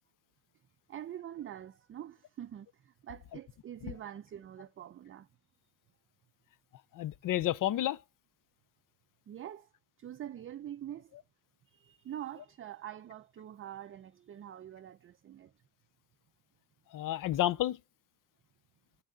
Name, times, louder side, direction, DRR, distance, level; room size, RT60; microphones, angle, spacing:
voice 1, 0.9-5.3 9.3-9.7 10.0-11.1 11.7-15.5, right 11 dB, 35° right, 0.4 m, -45 dB
voice 2, 6.9-8.0 16.9-17.8, left 13 dB, 55° left, 0.5 m, -30 dB
8.4 x 7.6 x 3.8 m
cardioid pair, 110°, 38 cm